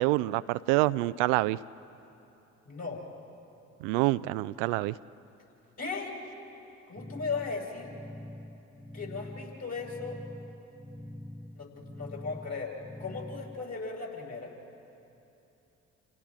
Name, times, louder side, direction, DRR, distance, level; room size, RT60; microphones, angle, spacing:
voice 1, 0.0-1.6 3.8-4.9, right 19 dB, 70° right, 16 dB, 0.5 m, -26 dB
voice 2, 2.6-3.0 5.8-6.2 6.9-7.9 8.9-10.2 11.5-14.5, left 4 dB, 45° left, -2 dB, 6.2 m, -37 dB
sound 1, 7.0-13.7, left 1 dB, ahead, 0.7 m, -45 dB
29.0 x 29.0 x 3.7 m, 2.9 s
figure-of-eight pair, 45°, 36 cm